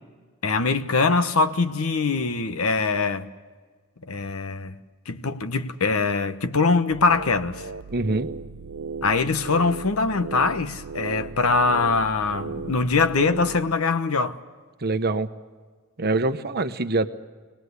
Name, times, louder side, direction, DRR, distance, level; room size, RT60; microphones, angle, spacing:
voice 1, 0.4-3.3 4.1-4.7 5.1-7.7 9.0-14.4, left 4 dB, 70° left, 1.1 m, -23 dB
sound 1, 6.9-13.6, right 5 dB, 80° right, 0.6 m, -36 dB
voice 2, 7.9-8.3 14.8-15.3 16.0-17.1, right 2 dB, 45° right, 1.0 m, -24 dB
24.0 x 19.0 x 8.2 m
head